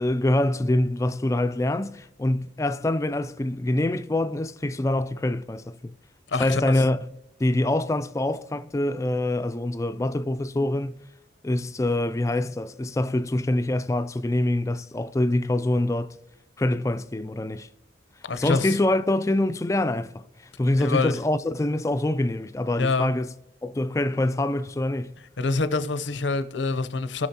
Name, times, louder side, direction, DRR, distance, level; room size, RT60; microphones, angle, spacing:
voice 1, 0.0-5.9 6.4-7.1 7.4-11.0 11.4-16.2 16.6-17.7 18.4-20.2 20.6-23.3 23.6-25.2, left 1 dB, 15° left, 0.3 m, -25 dB
voice 2, 6.3-6.6 18.2-18.7 20.8-21.1 22.8-23.1 25.4-27.3, left 3 dB, 90° left, 0.7 m, -26 dB
17.0 x 6.3 x 2.8 m
head